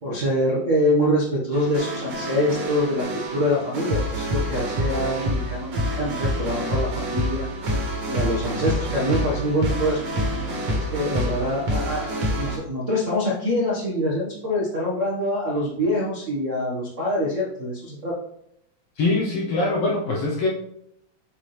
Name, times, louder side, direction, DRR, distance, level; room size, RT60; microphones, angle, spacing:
voice 1, 0.0-7.4 8.1-10.0 10.7-18.1, left 1 dB, 65° right, -4 dB, 0.7 m, -25 dB
sound 1, 1.5-12.6, equal, 50° right, 2.1 m, -27 dB
voice 2, 19.0-20.5, left 2 dB, 70° left, -2 dB, 1.4 m, -23 dB
8.3 x 4.2 x 3.3 m, 0.74 s
omnidirectional pair, 3.7 m